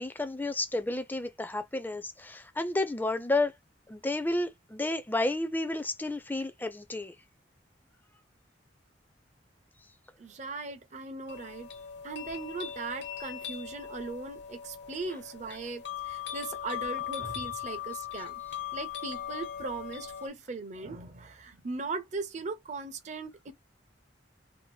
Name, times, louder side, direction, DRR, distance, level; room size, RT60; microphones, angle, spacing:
voice 1, 0.0-3.5 3.9-7.1, left 2 dB, 10° left, 0.4 m, -31 dB
voice 2, 10.2-11.7 12.0-18.3 18.7-23.5, right 3 dB, 40° right, 0.5 m, -39 dB
sound 1, 11.3-20.3, left 10 dB, 75° left, 1.0 m, -39 dB
2.7 x 2.5 x 3.1 m
head